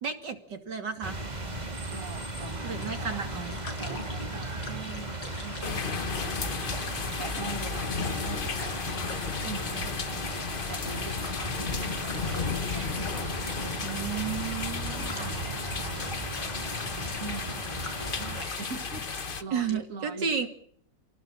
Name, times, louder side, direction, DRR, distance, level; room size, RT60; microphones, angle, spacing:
voice 1, 0.0-1.2 2.6-3.6 13.8-15.4 19.5-20.5, right 6 dB, 70° right, 6 dB, 3.3 m, -33 dB
sound 1, 1.0-18.4, right 1 dB, 25° right, 3.0 m, -37 dB
voice 2, 1.9-3.5 3.8-8.7 9.4-13.1 14.5-16.1 17.2-17.6 18.0-19.1 19.4-20.5, right 3 dB, 45° right, 5 dB, 2.7 m, -43 dB
sound 2, 2.8-19.8, left 2 dB, 90° left, 6.6 m, -46 dB
sound 3, 5.6-19.4, left 5 dB, 35° left, 1.1 m, -34 dB
30.0 x 18.0 x 7.4 m, 0.64 s
omnidirectional pair, 1.9 m